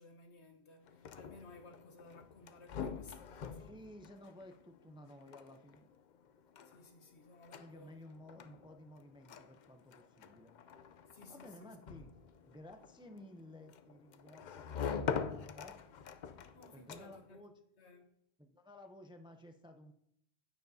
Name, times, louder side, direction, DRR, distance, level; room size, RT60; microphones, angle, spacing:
voice 1, 0.0-3.7 6.6-8.1 11.1-11.8 16.5-17.4 17.8-18.1, left 3 dB, 85° left, 1.4 m, -57 dB
sound 1, 0.8-17.4, left 6 dB, 55° left, 0.6 m, -45 dB
voice 2, 3.5-5.9 7.6-10.5 11.3-12.1 12.5-15.8 16.7-17.5 18.4-19.9, left 1 dB, 5° right, 0.4 m, -55 dB
9.3 x 9.2 x 2.7 m
omnidirectional pair, 1.1 m